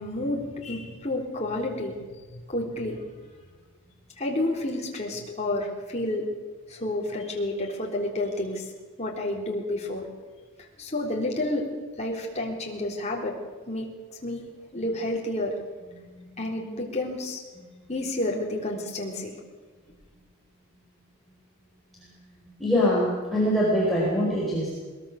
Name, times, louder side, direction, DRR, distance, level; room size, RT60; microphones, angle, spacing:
voice 1, 0.0-2.0 2.3-3.0 4.2-6.2 6.7-8.7 9.0-10.1 10.8-11.7 12.0-13.3 13.7-13.9 14.2-14.4 14.7-15.5 16.4-17.4 17.9-19.4, left 1 dB, 30° left, -1 dB, 3.7 m, -30 dB
voice 2, 15.8-16.3 17.7-17.9 21.9-24.7, equal, ahead, -6 dB, 4.9 m, -25 dB
22.0 x 20.5 x 6.6 m, 1.4 s
head